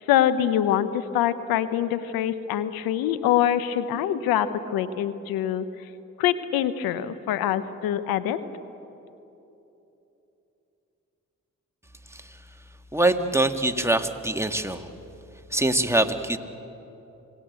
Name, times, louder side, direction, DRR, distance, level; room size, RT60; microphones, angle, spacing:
voice 1, 0.1-5.6 6.2-8.4, left 11 dB, 85° left, 13 dB, 0.9 m, -24 dB
voice 2, 12.9-14.9 15.5-16.4, right 2 dB, 10° right, 6 dB, 1.8 m, -23 dB
26.5 x 18.5 x 8.3 m, 3.0 s
hypercardioid pair, 40°, 35 cm